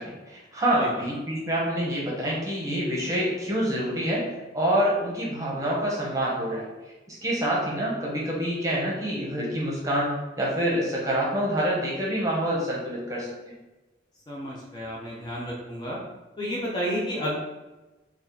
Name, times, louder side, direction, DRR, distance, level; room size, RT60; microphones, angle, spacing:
voice 1, 0.0-6.7 7.1-13.3, right 1 dB, 20° right, -4 dB, 0.8 m, -27 dB
voice 2, 14.3-16.0 16.4-17.4, equal, 25° left, -4 dB, 0.4 m, -31 dB
2.8 x 2.4 x 3.8 m, 1.1 s
head